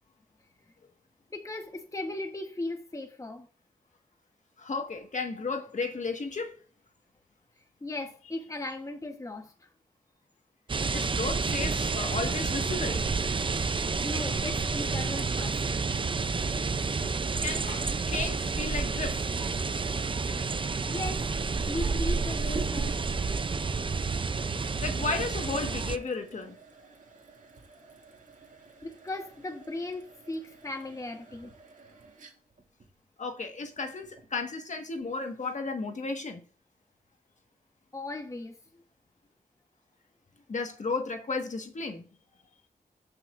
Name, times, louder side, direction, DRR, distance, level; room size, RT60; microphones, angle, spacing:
voice 1, 1.3-3.5 7.8-9.7 14.0-15.8 20.9-21.3 21.7-23.0 28.8-31.5 37.9-38.6, left 2 dB, 20° left, 1.2 m, -37 dB
voice 2, 4.6-6.6 10.9-13.1 17.4-19.3 24.8-26.6 33.2-36.4 40.5-42.0, left 3 dB, 55° left, 1.6 m, -34 dB
sound 1, 10.7-26.0, right 4 dB, 35° right, 0.6 m, -30 dB
sound 2, 16.7-34.4, right 3 dB, 55° right, 2.3 m, -50 dB
15.0 x 6.0 x 2.6 m
wide cardioid pair, 100°, 15 cm